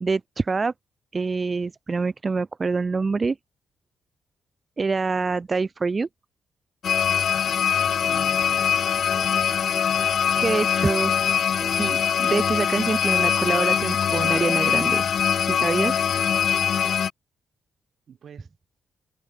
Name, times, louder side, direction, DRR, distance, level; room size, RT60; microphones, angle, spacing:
voice 1, 0.0-0.7 1.1-3.4 4.8-6.1 10.4-11.1 11.8-15.1 15.5-15.9, right 4 dB, 35° right, 0.8 m, -25 dB
sound 1, 6.8-17.1, left 8 dB, 65° left, 0.4 m, -22 dB
voice 2, 8.0-11.2 11.6-11.8 18.1-18.5, right 8 dB, 65° right, 6.6 m, -47 dB
cardioid pair, 75°, 0 cm